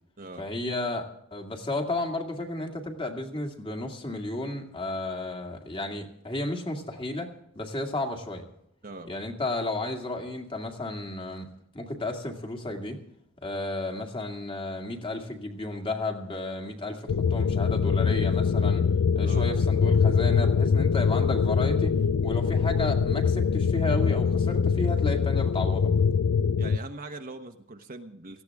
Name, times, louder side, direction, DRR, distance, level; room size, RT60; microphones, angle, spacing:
voice 1, 0.4-7.3 7.6-8.4 9.1-11.5 11.7-13.0 13.4-18.9 19.2-21.9 22.2-25.9, left 2 dB, 25° left, 3 dB, 2.2 m, -33 dB
sound 1, 17.1-26.8, left 6 dB, 90° left, 0.4 m, -23 dB
voice 2, 26.6-28.4, right 2 dB, 40° right, 4 dB, 1.1 m, -41 dB
18.0 x 15.0 x 3.6 m, 0.76 s
head